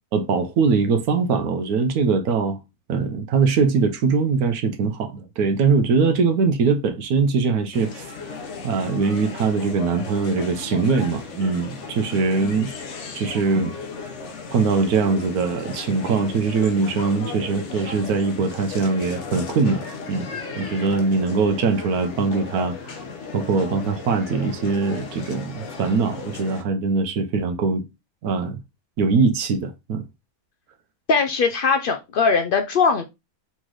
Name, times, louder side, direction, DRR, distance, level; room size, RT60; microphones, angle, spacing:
voice 1, 0.1-2.6 2.9-8.1 8.6-12.7 13.1-13.7 14.5-20.3 20.6-23.0 23.3-27.8 28.2-28.6 29.0-30.0, right 4 dB, 80° right, 1.2 m, -22 dB
sound 1, 7.7-26.6, left 4 dB, 60° left, 1.0 m, -35 dB
voice 2, 31.1-33.0, left 5 dB, 80° left, 0.4 m, -20 dB
4.1 x 3.1 x 3.7 m
omnidirectional pair, 1.6 m